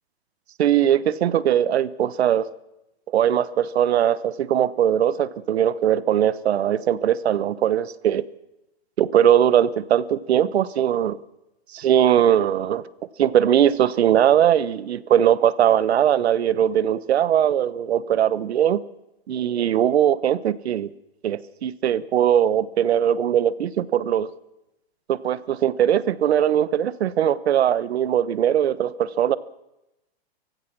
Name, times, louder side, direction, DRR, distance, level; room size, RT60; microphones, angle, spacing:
voice 1, 0.6-2.5 3.1-8.2 9.0-11.2 11.7-12.8 13.2-18.8 19.3-20.9 21.2-24.3 25.1-29.4, right 10 dB, 85° right, 17 dB, 1.1 m, -20 dB
29.0 x 16.0 x 6.1 m, 0.93 s
hypercardioid pair, 160°, 31 cm